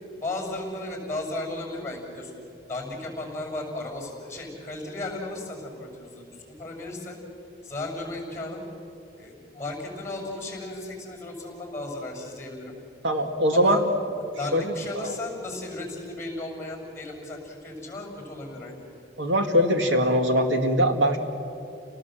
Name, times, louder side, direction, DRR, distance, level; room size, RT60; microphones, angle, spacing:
voice 1, 0.2-2.3 2.7-7.2 7.6-8.6 9.2-12.7 13.5-13.8 14.4-18.8, left 2 dB, 15° left, 0 dB, 6.2 m, -35 dB
voice 2, 13.0-13.8 14.5-14.7 15.0-15.1 19.2-21.2, equal, 85° right, 5 dB, 2.3 m, -22 dB
29.5 x 19.0 x 7.7 m, 2.8 s
head